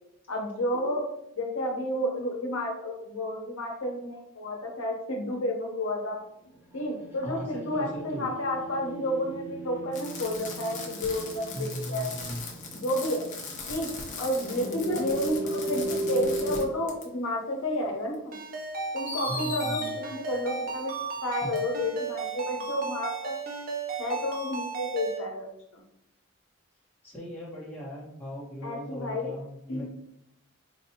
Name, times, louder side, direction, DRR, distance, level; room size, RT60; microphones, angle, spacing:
voice 1, 0.3-1.0 1.4-6.2 6.7-12.1 12.7-13.2 13.7-13.9 14.2-18.3 18.9-20.9 21.2-23.4 24.0-25.5 25.7-25.8 28.6-29.3 29.7-29.8, left 1 dB, 85° left, 1 dB, 0.8 m, -31 dB
sound 1, 6.4-16.6, right 1 dB, 10° right, 0.7 m, -37 dB
voice 2, 7.2-8.3 11.5-12.4 19.3-20.0 21.3-21.5 27.0-29.8, equal, 10° left, -7 dB, 1.1 m, -38 dB
Fireworks, 9.9-16.6 16.9-17.0 18.1-18.2 19.1-19.9 21.6-21.7, left 4 dB, 35° left, 0.6 m, -39 dB
Ringtone, 18.3-25.2, right 4 dB, 40° right, 0.5 m, -35 dB
4.5 x 2.6 x 2.8 m, 0.78 s
head